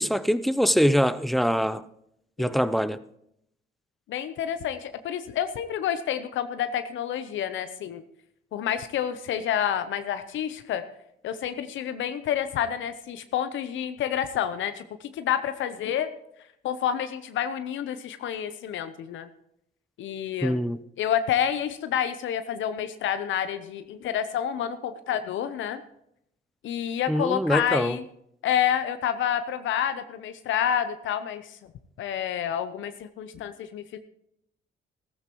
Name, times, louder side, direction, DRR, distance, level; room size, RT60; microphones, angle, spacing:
voice 1, 0.0-1.8 2.4-3.0 20.4-20.8 27.1-28.0, equal, ahead, 0.6 m, -23 dB
voice 2, 4.1-8.0 8.5-10.8 11.2-16.1 16.6-19.3 20.0-20.6 21.0-25.8 26.6-28.0 28.4-31.7 32.0-34.0, left 9 dB, 75° left, 0.7 m, -29 dB
15.0 x 14.5 x 3.0 m
cardioid pair, 90°, 20 cm